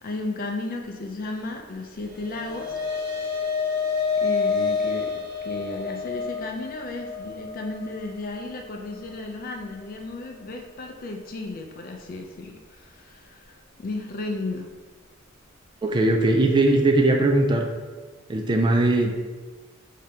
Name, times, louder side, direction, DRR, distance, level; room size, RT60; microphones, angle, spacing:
voice 1, 0.0-2.8 3.2-3.5 4.1-14.7, left 2 dB, 45° left, 3 dB, 0.4 m, -34 dB
sound 1, 1.9-10.5, left 5 dB, 50° right, 1.3 m, -29 dB
voice 2, 15.8-17.7 18.3-19.1, right 2 dB, 20° right, 3 dB, 0.3 m, -20 dB
5.1 x 2.8 x 3.4 m, 1.3 s
head